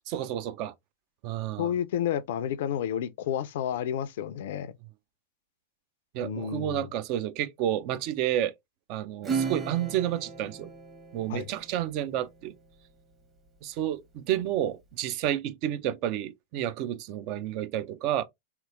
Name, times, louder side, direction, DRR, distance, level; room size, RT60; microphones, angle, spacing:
voice 1, 0.1-0.7 1.2-1.7 6.1-8.5 8.9-10.7 11.1-12.5 13.6-18.2, right 11 dB, 45° right, 0.5 m, -30 dB
voice 2, 1.6-4.7 6.2-6.9 11.3-11.5, left 9 dB, 60° left, 0.4 m, -30 dB
Acoustic guitar / Strum, 9.2-12.1, right 5 dB, 20° right, 1.0 m, -35 dB
3.3 x 2.9 x 2.4 m
figure-of-eight pair, 95°, 0 cm